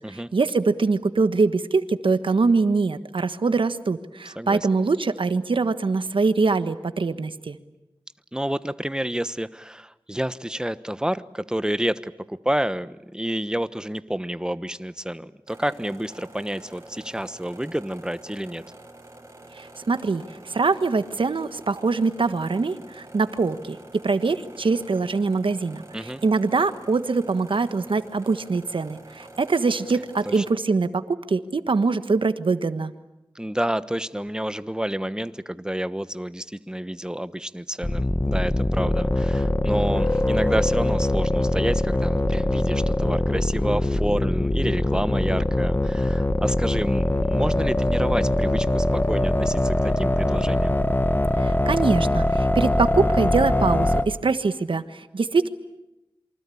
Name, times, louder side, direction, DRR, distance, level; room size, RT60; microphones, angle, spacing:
voice 1, 0.0-7.6 19.5-23.8 24.0-32.9 51.4-55.5, right 4 dB, 85° right, 11 dB, 1.4 m, -23 dB
voice 2, 4.2-4.7 8.3-18.6 25.9-26.2 30.3-30.4 33.3-50.8, right 1 dB, 10° right, 13 dB, 1.1 m, -29 dB
sound 1, 15.5-30.5, right 2 dB, 35° right, 5.5 m, -47 dB
sound 2, 37.8-54.0, left 1 dB, 20° left, 1.4 m, -22 dB
28.0 x 24.5 x 8.6 m, 0.94 s
wide cardioid pair, 60°, 9 cm